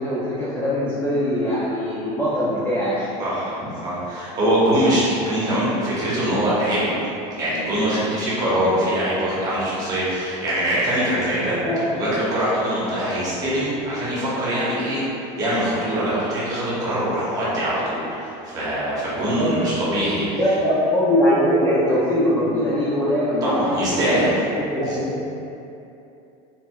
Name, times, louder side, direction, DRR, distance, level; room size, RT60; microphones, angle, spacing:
voice 1, 0.0-3.1 11.3-11.8 19.1-19.5 20.3-24.3 24.7-25.3, equal, 15° left, -10 dB, 0.5 m, -22 dB
voice 2, 3.2-11.6 11.9-15.0 15.4-20.3 23.4-24.4 24.8-25.0, right 1 dB, 25° right, -8 dB, 1.0 m, -23 dB
4.7 x 3.5 x 2.3 m, 2.8 s
cardioid pair, 175°, 15 cm